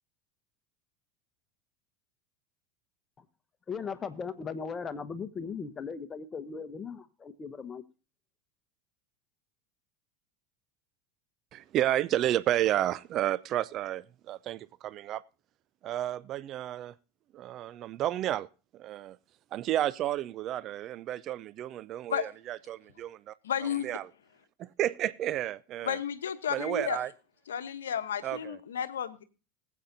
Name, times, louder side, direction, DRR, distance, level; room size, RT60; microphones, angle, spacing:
voice 1, 3.7-7.8, left 5 dB, 25° left, 1.1 m, -38 dB
voice 2, 11.5-15.2 15.8-16.9 17.3-18.5 18.7-19.2 19.5-23.3 23.8-24.1 24.6-26.0 26.5-27.1 28.2-28.6, right 13 dB, 45° right, 0.4 m, -31 dB
voice 3, 23.4-23.9 25.8-27.0 27.5-29.2, left 9 dB, 80° left, 1.0 m, -32 dB
20.5 x 8.3 x 2.7 m
hypercardioid pair, 85°, 0 cm